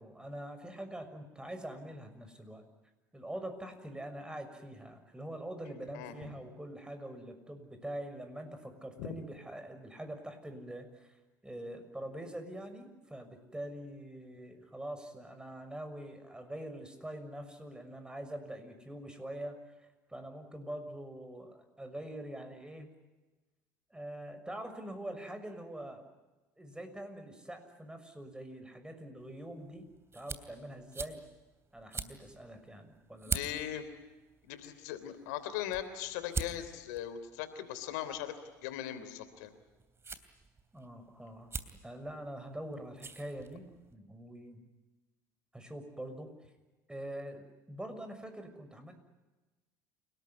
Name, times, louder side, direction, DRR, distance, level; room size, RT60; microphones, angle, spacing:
voice 1, 0.0-2.7 3.1-22.9 23.9-26.0 26.6-29.8 30.1-31.2 31.7-33.4 40.7-41.5 41.8-43.6 43.9-44.6 45.5-46.5 46.9-48.9, right 1 dB, 10° right, 8 dB, 6.4 m, -44 dB
sound 1, 29.2-43.9, right 4 dB, 25° right, 2.9 m, -45 dB
voice 2, 33.3-33.8 34.4-38.3 38.6-39.5, left 11 dB, 75° left, 11 dB, 3.2 m, -39 dB
29.0 x 19.0 x 9.6 m, 1.2 s
hypercardioid pair, 70°, 9 cm